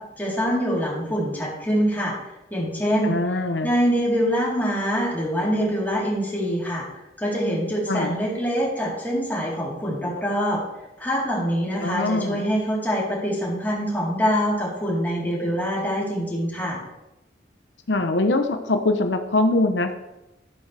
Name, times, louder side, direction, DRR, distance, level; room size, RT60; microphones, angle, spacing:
voice 1, 0.2-2.2 2.5-3.2 3.6-10.6 11.0-16.8, equal, 10° left, -6 dB, 3.7 m, -24 dB
voice 2, 3.0-3.7 7.9-8.2 11.8-12.4 17.9-19.9, left 2 dB, 80° left, 7 dB, 0.8 m, -22 dB
13.0 x 11.5 x 3.4 m, 0.95 s
head